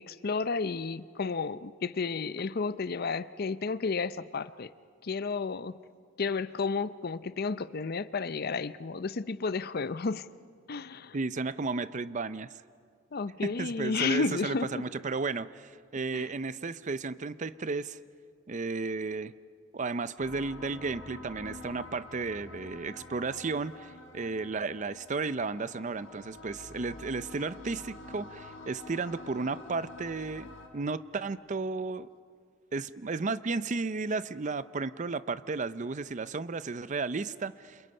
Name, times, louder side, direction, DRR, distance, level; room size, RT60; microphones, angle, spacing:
voice 1, 0.0-4.7 5.0-5.8 6.2-10.3 10.7-11.2 13.1-14.8 16.1-16.3, left 4 dB, 50° left, 15 dB, 0.6 m, -32 dB
voice 2, 11.1-12.5 13.4-18.0 18.5-19.3 19.7-30.5 30.7-32.1 32.7-37.9, right 4 dB, 40° right, 15 dB, 0.5 m, -33 dB
sound 1, 20.2-30.7, left 2 dB, 85° left, 4.7 m, -47 dB
29.5 x 27.0 x 5.5 m, 2.2 s
head